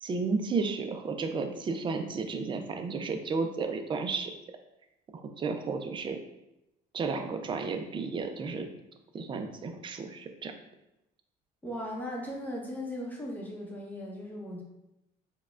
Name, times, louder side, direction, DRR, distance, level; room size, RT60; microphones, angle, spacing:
voice 1, 0.0-4.3 5.1-6.2 6.9-8.7 9.1-10.5, right 4 dB, 30° right, 6 dB, 0.4 m, -33 dB
voice 2, 11.6-14.6, equal, 10° left, -2 dB, 0.8 m, -37 dB
4.6 x 2.1 x 2.3 m, 0.90 s
cardioid pair, 110°, 17 cm